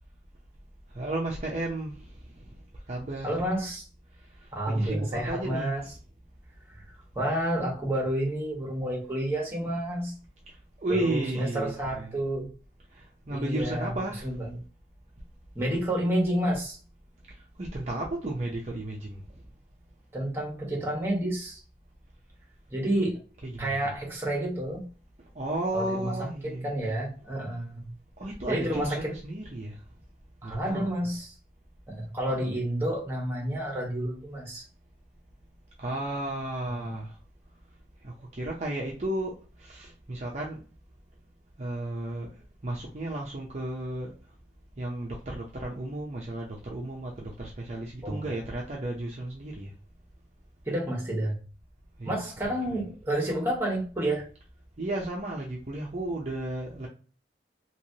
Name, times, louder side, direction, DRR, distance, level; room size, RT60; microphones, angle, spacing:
voice 1, 0.9-3.4 4.1-5.7 10.5-12.1 12.9-14.4 17.3-19.5 23.4-23.9 25.3-26.7 28.2-29.8 30.4-30.9 32.2-32.5 35.8-37.2 38.0-40.7 41.6-44.3 44.8-49.7 52.0-52.1 52.5-52.6 54.8-56.9, right 1 dB, 40° right, 0.6 m, -34 dB
voice 2, 3.2-3.8 4.5-5.8 6.7-10.1 10.9-12.5 13.3-13.9 14.2-14.6 15.5-16.8 20.1-21.6 22.7-23.2 23.6-24.9 25.7-27.8 28.5-29.2 30.4-31.4 31.9-34.7 36.7-36.9 48.0-48.2 50.6-51.4 52.0-54.3, right 1 dB, 15° right, 1.2 m, -30 dB
3.1 x 2.9 x 2.8 m
head